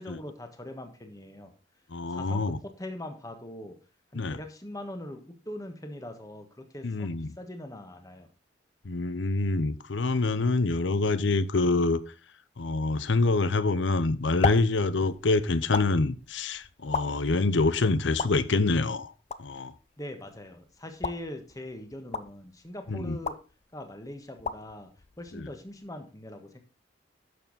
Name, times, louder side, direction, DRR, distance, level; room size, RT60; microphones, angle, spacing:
voice 1, 0.0-1.5 2.0-3.8 4.1-8.3 20.0-23.4 23.7-24.9 25.2-26.6, left 1 dB, 20° left, 1.4 m, -41 dB
voice 2, 1.9-2.6 4.1-4.4 6.8-7.3 8.8-12.0 12.6-19.1 19.4-19.7 22.9-23.2 25.3-25.5, left 3 dB, 75° left, 0.7 m, -26 dB
sound 1, 13.7-25.9, left 4 dB, 35° left, 0.5 m, -38 dB
11.0 x 6.9 x 4.1 m
head